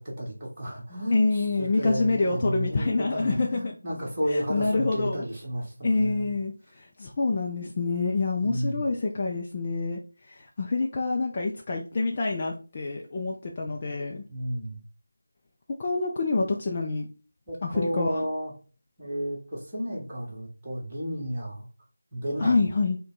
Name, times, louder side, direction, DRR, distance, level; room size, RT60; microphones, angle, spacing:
voice 1, 0.0-6.3 8.4-8.8 14.3-14.8 17.5-18.5 19.0-21.7 22.1-22.7, equal, 15° right, -7 dB, 1.6 m, -32 dB
voice 2, 1.1-3.7 4.3-5.3 5.8-10.0 10.3-14.2 15.8-17.1 17.6-18.2 22.4-23.0, left 3 dB, 20° left, 0 dB, 0.4 m, -27 dB
5.1 x 2.2 x 3.9 m, 0.36 s
figure-of-eight pair, 165°, 0 cm